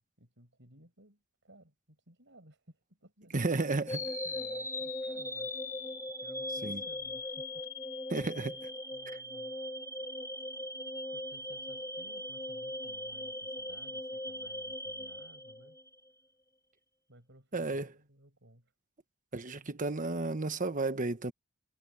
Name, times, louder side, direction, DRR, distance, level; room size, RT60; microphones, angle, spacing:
voice 1, 0.0-3.8 4.2-5.8 6.2-7.7 8.9-9.6 11.1-15.8 17.1-18.7, right 1 dB, 65° right, 7.3 m, -59 dB
voice 2, 3.3-4.0 6.6-6.8 8.1-8.6 17.5-17.9 19.3-21.3, right 3 dB, 40° right, 1.2 m, -32 dB
sound 1, 3.9-16.0, left 1 dB, 15° left, 2.3 m, -39 dB
head